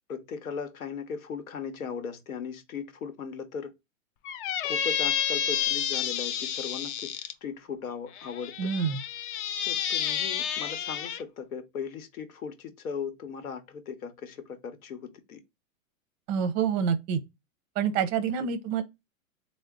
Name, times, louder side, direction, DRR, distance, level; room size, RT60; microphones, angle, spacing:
voice 1, 0.1-3.7 4.6-8.7 9.7-15.4 18.4-18.5, left 6 dB, 85° left, 1.0 m, -38 dB
Squeak, 4.2-7.3 8.1-11.2, left 9 dB, 40° left, 0.5 m, -30 dB
voice 2, 8.6-9.0 16.3-17.2 17.8-18.8, right 7 dB, 30° right, 0.5 m, -27 dB
3.6 x 2.0 x 3.6 m
hypercardioid pair, 130°, 41 cm